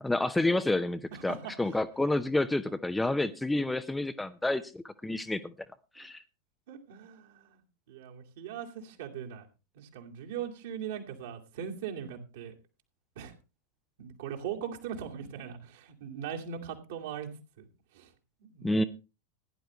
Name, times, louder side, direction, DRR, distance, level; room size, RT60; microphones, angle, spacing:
voice 1, 0.0-5.5 6.0-6.2 18.6-18.8, left 2 dB, 5° left, 10 dB, 0.7 m, -29 dB
voice 2, 1.1-1.5 6.7-7.6 7.9-9.5 9.7-12.5 13.2-13.3 14.0-17.3 17.6-17.7 17.9-18.1 18.4-18.8, right 8 dB, 55° right, 1 dB, 2.4 m, -40 dB
16.5 x 10.5 x 3.1 m, 0.29 s
figure-of-eight pair, 90°, 0 cm